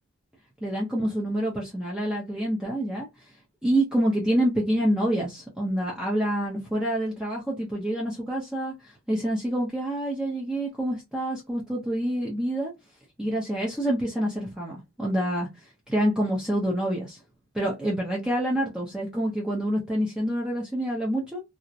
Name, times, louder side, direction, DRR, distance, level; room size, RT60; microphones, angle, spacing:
voice 1, 0.6-3.1 3.6-12.7 13.2-17.2 17.5-21.4, right 1 dB, 5° right, 0.5 m, -27 dB
2.6 x 2.0 x 2.4 m
head